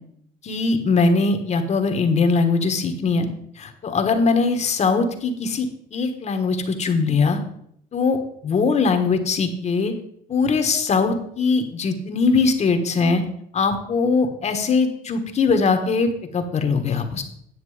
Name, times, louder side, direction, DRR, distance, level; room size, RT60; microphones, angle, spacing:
voice 1, 0.4-3.3 3.6-5.7 5.9-7.4 7.9-8.2 8.4-9.9 10.3-13.2 13.5-17.2, left 4 dB, 40° left, 7 dB, 1.4 m, -21 dB
9.8 x 6.6 x 4.9 m, 0.71 s
cardioid pair, 110°, 17 cm